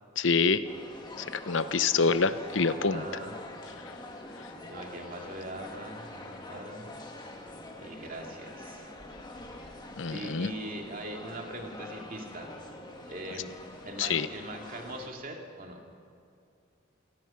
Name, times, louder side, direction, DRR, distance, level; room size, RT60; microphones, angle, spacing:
voice 1, 0.2-0.6 1.2-3.1 10.0-10.5 14.0-14.3, left 4 dB, 70° left, 12 dB, 0.8 m, -26 dB
sound 1, 0.6-15.1, left 1 dB, 20° left, 1.7 m, -45 dB
voice 2, 2.7-3.3 4.7-6.9 7.8-9.0 10.1-12.5 13.1-13.5 13.9-15.8, right 1 dB, 45° right, 1 dB, 2.7 m, -41 dB
28.0 x 18.0 x 5.8 m, 2.4 s
head